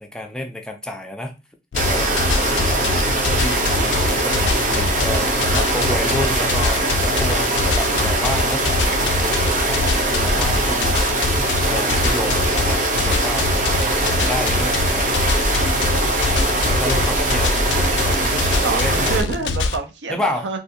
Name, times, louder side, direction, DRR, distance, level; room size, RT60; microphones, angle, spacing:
voice 1, 0.0-1.3 1.8-2.8 3.3-12.4 12.6-15.1 16.7-17.5 17.7-17.9 18.7-19.0 20.1-20.5, left 1 dB, 5° left, 0.3 m, -30 dB
sound 1, 1.7-19.8, left 3 dB, 85° left, 0.3 m, -24 dB
sound 2, 1.7-19.2, right 2 dB, 45° right, 0.6 m, -21 dB
voice 2, 2.0-2.4 5.1-5.7 18.6-20.6, right 4 dB, 90° right, 0.5 m, -28 dB
2.5 x 2.3 x 2.7 m
head